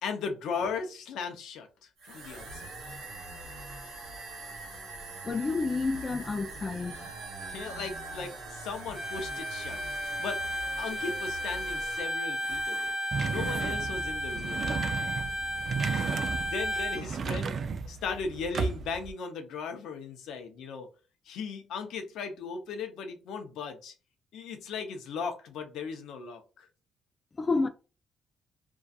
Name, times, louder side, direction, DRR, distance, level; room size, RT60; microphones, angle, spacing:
voice 1, 0.0-2.8 7.5-9.8 10.2-10.4 10.8-14.7 15.9-16.0 16.4-20.9 21.2-23.9 24.3-26.7, left 5 dB, 85° left, 0.6 m, -37 dB
sound 1, 2.0-13.0 13.2-13.8, right 2 dB, 85° right, 0.9 m, -43 dB
voice 2, 5.2-7.0 27.4-27.7, left 3 dB, 30° left, 0.3 m, -29 dB
Bowed string instrument, 8.9-17.1, equal, 15° right, 1.0 m, -33 dB
sound 2, 13.1-19.1, right 5 dB, 55° right, 0.3 m, -34 dB
2.6 x 2.3 x 2.3 m
cardioid pair, 90°, 0 cm